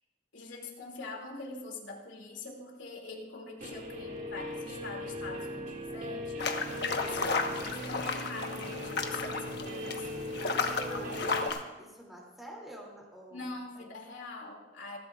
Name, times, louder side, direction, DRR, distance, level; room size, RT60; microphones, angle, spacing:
voice 1, 0.3-11.2 13.3-15.0, left 3 dB, 90° left, 0 dB, 2.6 m, -44 dB
Guitar, 3.6-11.5, equal, 45° right, 2.0 m, -39 dB
sound 1, 6.4-11.6, left 4 dB, 65° left, 1.2 m, -33 dB
voice 2, 10.5-11.2 11.8-13.8, right 1 dB, ahead, -2 dB, 2.8 m, -47 dB
27.5 x 12.0 x 2.5 m, 1.1 s
head